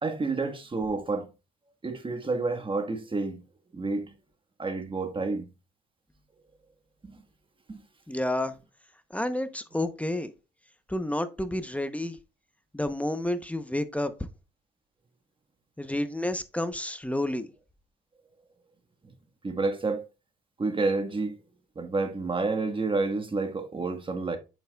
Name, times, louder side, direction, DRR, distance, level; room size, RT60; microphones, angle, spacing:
voice 1, 0.0-1.3 1.8-3.4 3.7-4.1 4.6-5.4 7.1-7.2 7.7-7.8 19.4-20.0 20.6-21.4 21.7-24.4, right 3 dB, 25° right, 1.4 m, -29 dB
voice 2, 8.1-8.5 9.1-10.3 10.9-12.2 12.7-14.1 15.8-17.5, left 1 dB, 5° left, 0.8 m, -30 dB
9.0 x 6.9 x 2.3 m
cardioid pair, 90°, 20 cm